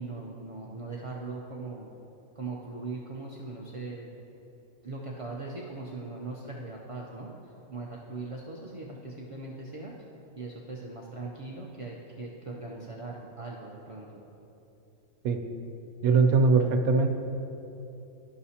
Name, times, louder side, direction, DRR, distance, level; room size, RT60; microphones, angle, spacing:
voice 1, 0.0-1.9 2.3-4.1 4.8-7.3 7.7-9.9 10.4-14.2, right 3 dB, 60° right, -3 dB, 0.3 m, -39 dB
voice 2, 16.0-17.1, right 4 dB, 85° right, 5 dB, 1.1 m, -21 dB
12.5 x 5.8 x 2.8 m, 3.0 s
omnidirectional pair, 1.5 m